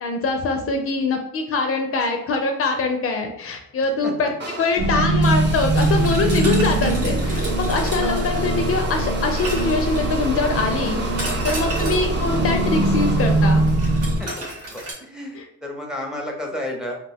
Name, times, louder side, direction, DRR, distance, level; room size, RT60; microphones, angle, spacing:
voice 1, 0.0-4.3 4.6-11.0 11.4-13.6 15.3-15.4, left 3 dB, 50° left, 4 dB, 0.4 m, -23 dB
sound 1, 4.4-14.6, right 2 dB, 35° right, 0.7 m, -33 dB
sound 2, 4.8-14.2, right 2 dB, 70° right, 0.5 m, -22 dB
sound 3, 5.8-8.8 9.4-10.3 11.2-12.2 13.7-14.9, right 1 dB, 90° right, 1.0 m, -33 dB
voice 2, 7.9-8.2 11.2-11.5 14.0-17.0, left 1 dB, ahead, 0 dB, 0.6 m, -33 dB
2.3 x 2.2 x 3.4 m, 0.77 s
cardioid pair, 90°, 30 cm